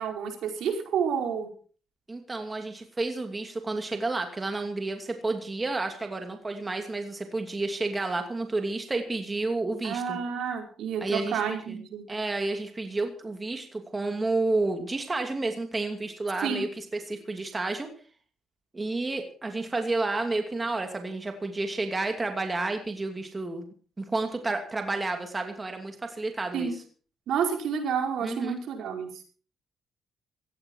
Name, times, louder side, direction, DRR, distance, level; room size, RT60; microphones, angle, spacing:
voice 1, 0.0-1.5 9.8-12.0 16.4-16.7 26.5-26.7 27.3-29.2, right 7 dB, 75° right, 3 dB, 4.9 m, -30 dB
voice 2, 2.1-10.2 11.0-11.8 12.1-17.9 18.7-23.7 24.0-26.7 28.2-28.6, right 2 dB, 20° right, 5 dB, 2.7 m, -30 dB
18.0 x 14.5 x 4.7 m, 0.41 s
cardioid pair, 90°, 0 cm